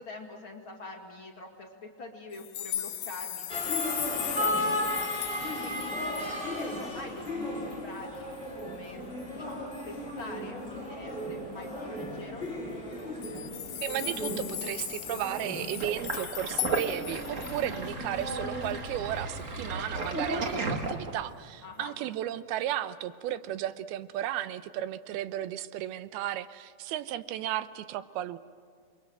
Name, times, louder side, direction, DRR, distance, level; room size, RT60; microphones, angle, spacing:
voice 1, 0.0-5.1 5.6-8.3 8.6-12.5 21.6-21.9, left 3 dB, 40° left, 1 dB, 2.6 m, -45 dB
sound 1, 2.3-6.9 7.3-7.4 7.7-7.8 8.2-8.6 9.7-9.9 11.6-11.7 12.0-12.1 12.9-17.8 18.3-18.4, left 12 dB, 80° left, 3.1 m, -37 dB
sound 2, 3.5-18.6, left 1 dB, 15° left, 6.0 m, -36 dB
voice 2, 13.8-28.4, right 12 dB, 85° right, 13 dB, 2.7 m, -34 dB
Sink (filling or washing), 15.8-21.4, right 2 dB, 55° right, 0.8 m, -34 dB
28.5 x 23.0 x 7.8 m, 2.2 s
omnidirectional pair, 4.3 m